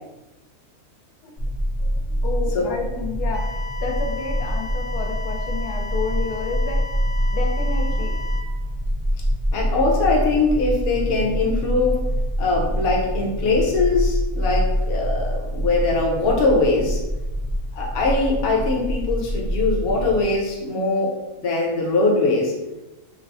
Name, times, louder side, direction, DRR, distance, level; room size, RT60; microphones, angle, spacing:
sound 1, 1.4-20.2, equal, 60° right, 0.5 m, -25 dB
voice 1, 1.8-6.8 7.3-8.1, left 4 dB, 85° left, 2 dB, 1.1 m, -30 dB
sound 2, 3.3-8.4, left 4 dB, 70° left, 1.4 m, -36 dB
voice 2, 9.5-12.0 12.4-17.0 17.8-22.5, left 3 dB, 50° left, -1 dB, 0.7 m, -21 dB
4.5 x 2.0 x 2.6 m, 1.0 s
omnidirectional pair, 1.6 m